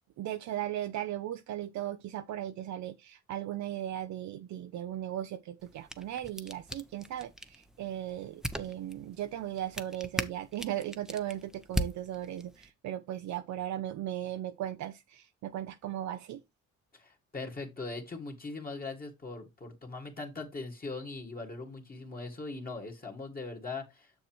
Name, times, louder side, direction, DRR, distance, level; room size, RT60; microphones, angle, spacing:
voice 1, 0.2-16.4, right 12 dB, 70° right, 0.6 m, -37 dB
sound 1, 5.6-12.7, equal, ahead, 0.7 m, -40 dB
voice 2, 16.9-24.1, left 3 dB, 30° left, 2.1 m, -40 dB
7.0 x 6.7 x 3.0 m
cardioid pair, 90°, 30 cm